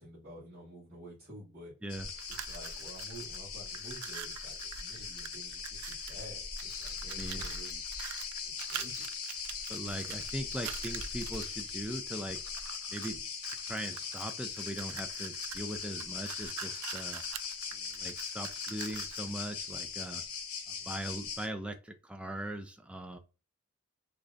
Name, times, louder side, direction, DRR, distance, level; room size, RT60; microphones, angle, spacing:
voice 1, 0.0-1.7 2.3-7.8 8.4-9.1, right 1 dB, 35° right, -11 dB, 1.8 m, -50 dB
sound 1, 1.9-21.5, left 6 dB, 75° left, 1.0 m, -40 dB
sound 2, 2.1-3.4 3.7-6.2 6.6-11.7 12.3-13.1 13.4-19.3, right 12 dB, 90° right, 0.3 m, -45 dB
voice 2, 7.0-7.5 9.7-12.4 12.9-13.2 13.6-17.2 17.7-20.2 20.7-23.2, right 1 dB, 5° right, 6 dB, 0.3 m, -40 dB
3.7 x 3.2 x 2.5 m, 0.32 s
head